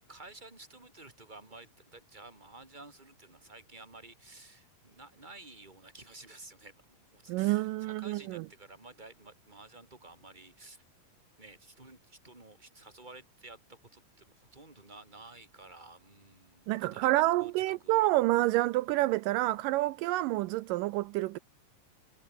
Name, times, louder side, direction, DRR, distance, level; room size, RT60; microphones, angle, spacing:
voice 1, 0.1-10.8 11.4-18.1, right 2 dB, 10° right, 4.3 m, -52 dB
voice 2, 7.3-8.5 16.7-21.4, right 18 dB, 80° right, 2.2 m, -28 dB
omnidirectional pair, 4.0 m